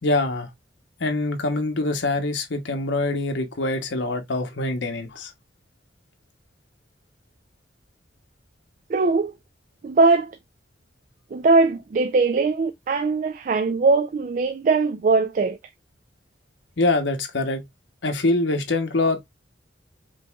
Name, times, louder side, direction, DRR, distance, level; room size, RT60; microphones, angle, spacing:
voice 1, 0.0-0.5 1.0-5.3 16.8-17.6 18.0-19.2, left 2 dB, 85° left, 0.9 m, -24 dB
voice 2, 8.9-9.3 9.8-10.4 11.3-15.6, right 3 dB, 45° right, 0.4 m, -20 dB
5.1 x 3.0 x 2.3 m
head